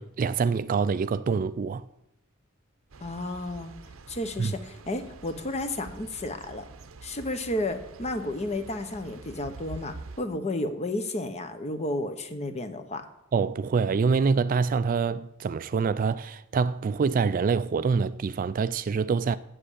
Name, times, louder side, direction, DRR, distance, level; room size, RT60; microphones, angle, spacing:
voice 1, 0.0-1.8 4.4-4.5 13.3-19.4, right 5 dB, 40° right, 0.3 m, -25 dB
sound 1, 2.9-10.2, right 3 dB, 80° right, 0.7 m, -46 dB
voice 2, 3.0-3.7 4.1-6.6 7.0-13.0, left 1 dB, 30° left, 0.9 m, -32 dB
7.6 x 7.4 x 8.3 m
head